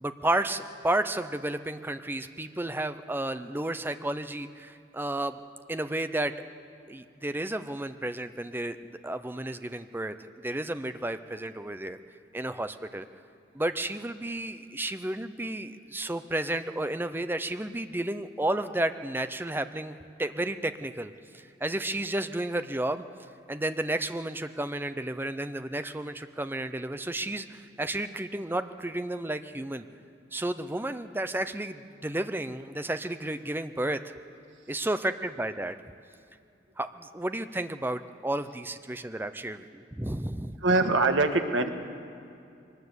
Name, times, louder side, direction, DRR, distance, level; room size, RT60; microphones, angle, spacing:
voice 1, 0.0-5.4 5.7-6.3 6.9-10.1 10.4-12.0 12.3-13.1 13.5-23.0 23.5-29.8 30.3-34.1 34.7-35.7 36.8-40.6, right 1 dB, 10° right, 10 dB, 0.6 m, -32 dB
voice 2, 40.6-41.7, right 3 dB, 85° right, 6 dB, 1.6 m, -23 dB
23.0 x 19.5 x 8.1 m, 2.5 s
head